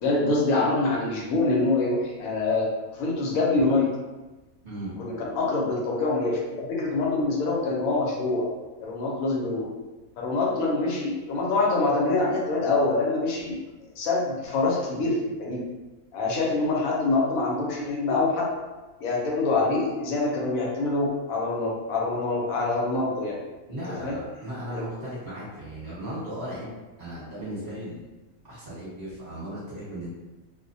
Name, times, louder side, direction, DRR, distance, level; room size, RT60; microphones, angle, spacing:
voice 1, 0.0-2.7 2.9-3.9 5.0-8.5 8.8-9.7 10.2-13.6 14.0-15.6 16.1-18.5 19.0-23.4 24.0-24.2, left 3 dB, 80° left, -3 dB, 1.1 m, -25 dB
voice 2, 23.7-26.7 27.0-28.1 28.4-30.1, right 1 dB, 30° right, -9 dB, 1.1 m, -36 dB
2.5 x 2.1 x 2.6 m, 1.2 s
omnidirectional pair, 1.5 m